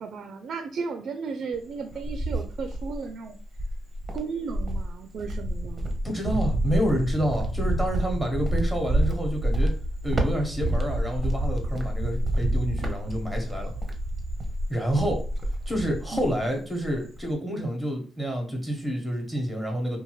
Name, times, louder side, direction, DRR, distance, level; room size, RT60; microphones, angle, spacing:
voice 1, 0.0-3.4 4.1-5.9 16.1-16.2, right 5 dB, 60° right, 6 dB, 0.3 m, -34 dB
Cricket, 1.5-3.1 3.5-16.5 16.8-17.3, right 1 dB, 25° right, 0.6 m, -28 dB
voice 2, 6.0-9.7 10.0-13.7 14.7-15.2 15.7-20.0, equal, 5° left, 2 dB, 1.0 m, -28 dB
2.6 x 2.3 x 3.0 m, 0.40 s
cardioid pair, 90°, 0 cm